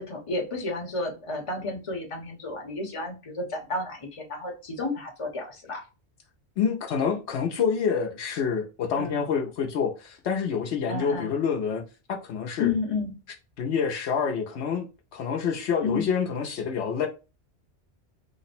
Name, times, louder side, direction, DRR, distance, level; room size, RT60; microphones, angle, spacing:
voice 1, 0.0-5.8 8.9-9.3 10.9-11.4 12.6-13.1 15.8-16.1, left 3 dB, 30° left, 0.9 m, -31 dB
voice 2, 6.6-11.8 12.1-12.7 13.6-17.1, left 6 dB, 80° left, 0.9 m, -27 dB
3.2 x 2.0 x 4.1 m
omnidirectional pair, 1.1 m